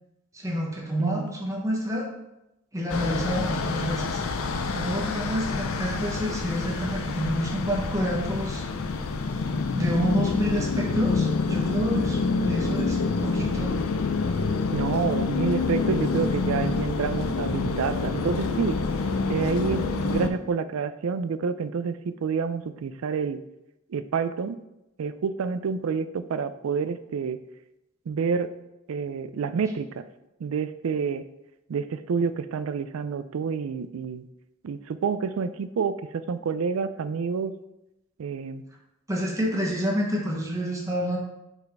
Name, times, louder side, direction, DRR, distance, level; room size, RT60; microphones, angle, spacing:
voice 1, 0.3-2.0 2.7-4.2 4.7-8.6 9.7-13.7 39.1-41.2, equal, 15° right, -2 dB, 1.0 m, -28 dB
voice 2, 1.0-1.3 14.7-18.8 19.3-23.4 23.9-24.6 25.0-27.4 28.1-28.5 28.9-30.0 30.4-31.2 31.7-34.2 34.6-37.5 38.2-38.6, right 5 dB, 80° right, 13 dB, 0.4 m, -28 dB
sound 1, 2.9-20.3, left 4 dB, 85° left, 0.6 m, -27 dB
5.4 x 4.1 x 4.6 m, 0.91 s
head